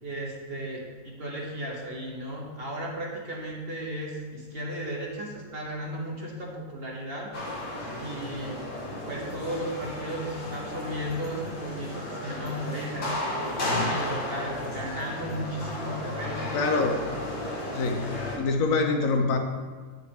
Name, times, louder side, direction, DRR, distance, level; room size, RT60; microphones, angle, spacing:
voice 1, 0.0-7.3 8.0-8.6 9.1-13.1 13.7-16.8, right 1 dB, 40° right, -2 dB, 1.3 m, -35 dB
sound 1, 7.3-18.4, left 1 dB, 85° left, 1.9 m, -34 dB
voice 2, 13.6-13.9 16.5-17.1 17.7-19.4, left 3 dB, 65° left, 4 dB, 1.0 m, -26 dB
8.4 x 6.2 x 3.4 m, 1.5 s
omnidirectional pair, 1.6 m